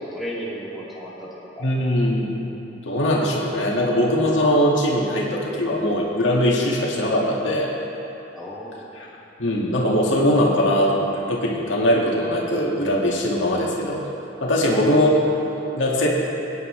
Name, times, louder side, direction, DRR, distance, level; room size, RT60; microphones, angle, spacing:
voice 1, 0.0-1.7 8.3-8.9 14.7-15.0, equal, ahead, -7 dB, 2.5 m, -34 dB
voice 2, 1.6-2.3 2.8-7.7 9.0-9.1 9.4-14.0 14.4-15.2 15.8-16.1, equal, 75° left, -3 dB, 2.0 m, -21 dB
23.0 x 9.6 x 3.3 m, 3.0 s
head